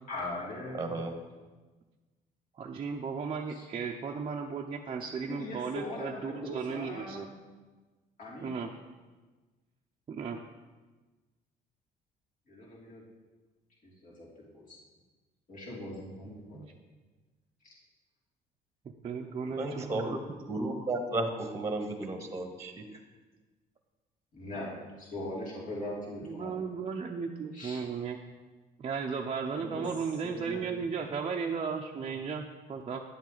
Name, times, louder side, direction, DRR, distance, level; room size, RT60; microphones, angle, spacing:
voice 1, 0.1-1.0 3.5-3.7 5.3-7.3 8.2-8.6 12.5-13.0 13.8-14.3 14.5-14.8 15.5-16.6 17.6-17.7 19.5-19.8 24.3-26.6 27.5-27.8 29.5-29.9 30.2-30.9, left 1 dB, 50° left, -5 dB, 2.9 m, -41 dB
voice 2, 0.7-1.1 19.6-20.2 20.5-22.8, right 2 dB, 15° right, 6 dB, 1.1 m, -33 dB
voice 3, 2.6-7.3 8.4-8.7 10.1-10.4 16.5-16.7 19.0-20.2 26.2-28.2 28.8-33.0, right 5 dB, 35° right, 0 dB, 0.6 m, -35 dB
9.9 x 7.3 x 4.0 m, 1.3 s
cardioid pair, 110°, 17 cm